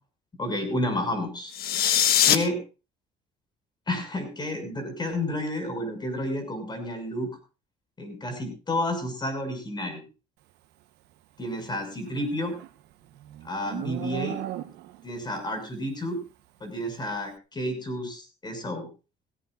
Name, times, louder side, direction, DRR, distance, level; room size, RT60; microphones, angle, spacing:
voice 1, 0.4-1.5 2.2-2.6 3.9-7.3 8.0-10.0 11.4-12.5 13.4-14.4 15.0-16.2 16.6-18.9, left 1 dB, 25° left, 5 dB, 6.5 m, -30 dB
sound 1, 1.5-2.4, left 10 dB, 65° left, 1.6 m, -21 dB
Livestock farm animals working animals, 11.9-15.1, right 13 dB, 85° right, 1.1 m, -37 dB
18.5 x 16.5 x 2.6 m, 0.33 s
cardioid pair, 110°, 17 cm